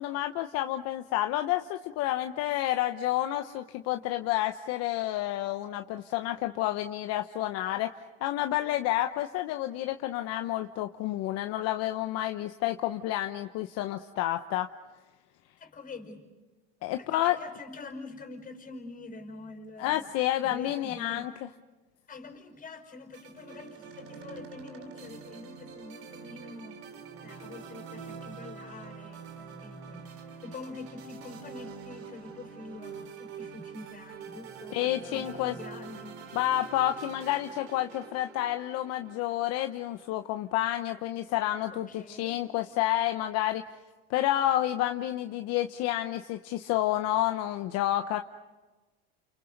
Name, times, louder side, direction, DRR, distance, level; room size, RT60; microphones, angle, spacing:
voice 1, 0.0-7.9 8.2-14.7 16.8-17.4 19.8-21.3 34.7-35.5 36.3-43.6 44.1-48.2, left 14 dB, 60° left, 7 dB, 1.0 m, -29 dB
voice 2, 15.6-16.2 17.0-20.1 20.4-21.3 22.1-26.8 27.2-30.1 30.4-36.2 41.7-42.4, left 3 dB, 25° left, 5 dB, 5.2 m, -45 dB
sound 1, 23.1-40.5, right 6 dB, 50° right, 2.9 m, -46 dB
29.5 x 29.5 x 5.3 m, 1.2 s
supercardioid pair, 125°, 29 cm